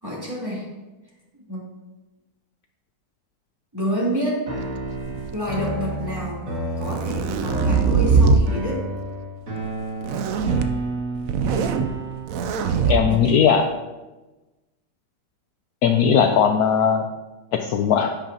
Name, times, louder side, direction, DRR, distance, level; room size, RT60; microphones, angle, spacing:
voice 1, 0.0-0.7 1.5-1.7 3.7-4.5 5.3-6.5 6.8-8.8 12.6-13.4, equal, 10° right, -7 dB, 3.3 m, -28 dB
sound 1, 4.5-12.5, right 2 dB, 45° right, 2.4 m, -31 dB
sound 2, 4.9-5.7 6.6-8.5 10.0-10.7 11.1-11.9 12.3-13.0, right 5 dB, 70° right, 0.8 m, -21 dB
voice 2, 12.9-13.7 15.8-17.0 17.6-18.1, left 7 dB, 70° left, 5 dB, 1.0 m, -18 dB
10.0 x 8.9 x 2.8 m, 1.1 s
omnidirectional pair, 1.9 m